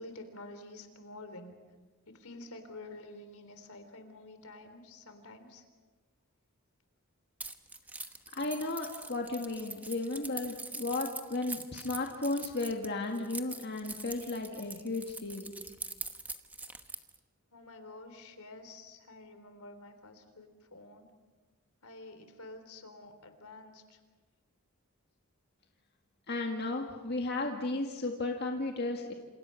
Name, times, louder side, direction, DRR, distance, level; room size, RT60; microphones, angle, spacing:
voice 1, 0.0-1.6 2.1-5.6 17.5-21.1 21.8-24.0, left 2 dB, 80° left, 8 dB, 3.5 m, -49 dB
Keys jangling, 7.4-17.2, right 3 dB, 5° right, 1.1 m, -43 dB
voice 2, 8.3-15.5 26.3-29.1, left 2 dB, 50° left, 2 dB, 1.9 m, -34 dB
28.0 x 28.0 x 5.8 m, 1.3 s
head